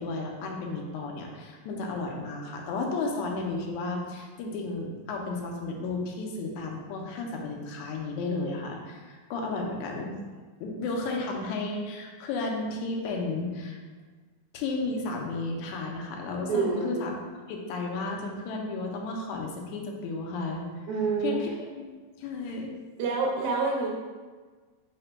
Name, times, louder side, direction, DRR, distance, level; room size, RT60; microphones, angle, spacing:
voice 1, 0.0-10.2 10.6-13.8 14.5-17.2 17.5-20.7 21.2-21.9 22.2-22.7, left 3 dB, 80° left, 1 dB, 1.8 m, -33 dB
voice 2, 16.5-16.9 20.9-21.4 23.0-23.9, right 4 dB, 70° right, -2 dB, 1.9 m, -27 dB
4.9 x 2.1 x 4.4 m, 1.4 s
omnidirectional pair, 3.6 m